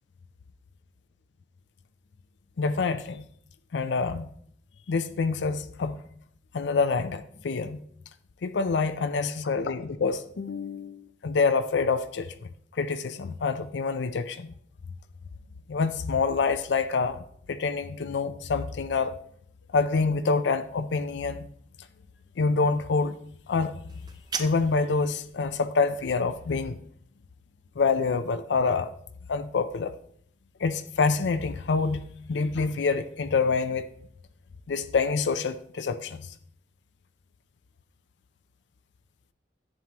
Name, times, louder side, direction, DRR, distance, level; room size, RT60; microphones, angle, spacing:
voice 1, 2.6-3.2 3.7-4.3 4.9-6.0 6.5-7.8 8.4-14.5 15.7-19.1 19.7-21.5 22.4-23.1 23.5-23.7 24.4-26.8 27.8-28.9 29.3-29.9 30.6-33.9 34.7-36.3, left 4 dB, 85° left, 0.5 m, -27 dB
sound 1, 23.9-24.9, right 5 dB, 25° right, 0.5 m, -36 dB
10.5 x 7.5 x 3.0 m
head